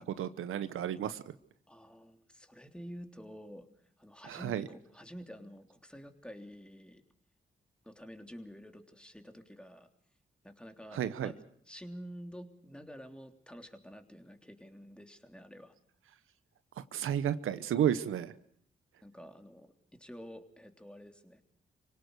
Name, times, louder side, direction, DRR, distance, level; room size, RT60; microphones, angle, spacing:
voice 1, 0.2-1.2 4.3-4.7 10.9-11.3 16.9-18.3, right 10 dB, 80° right, 13 dB, 0.9 m, -32 dB
voice 2, 1.7-3.6 4.0-7.0 7.8-9.9 10.4-15.7 19.0-21.4, equal, 5° left, 5 dB, 3.2 m, -49 dB
25.5 x 18.0 x 6.6 m, 0.66 s
supercardioid pair, 45°, 21 cm